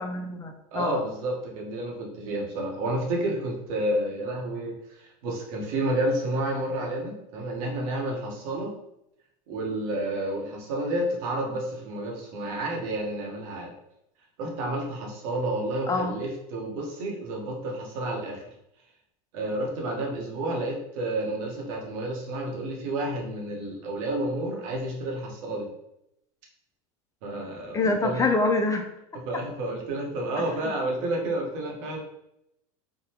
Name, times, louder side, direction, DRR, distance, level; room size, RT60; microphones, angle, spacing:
voice 1, 0.0-1.0 15.9-16.1 27.7-28.8 30.6-30.7, left 3 dB, 20° left, 4 dB, 0.3 m, -26 dB
voice 2, 0.7-8.7 9.5-13.7 14.4-18.4 19.3-25.7 27.2-28.3 29.2-32.0, right 1 dB, 70° right, 1 dB, 1.0 m, -30 dB
3.6 x 2.2 x 2.8 m, 0.80 s
supercardioid pair, 115°, 18 cm